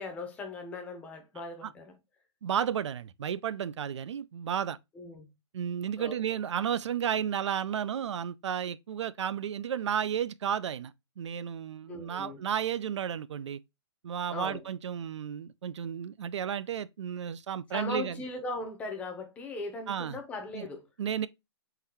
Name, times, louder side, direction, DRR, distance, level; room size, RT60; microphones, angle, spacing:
voice 1, 0.0-1.9 4.9-5.3 6.0-6.2 11.9-12.4 14.3-14.6 17.7-20.9, left 2 dB, 10° left, 0.6 m, -38 dB
voice 2, 2.4-4.8 5.5-10.9 11.2-13.6 14.0-18.2 19.9-20.2 20.5-20.7 21.0-21.3, right 8 dB, 85° right, 0.4 m, -32 dB
3.9 x 2.7 x 4.3 m
hypercardioid pair, 155°, 15 cm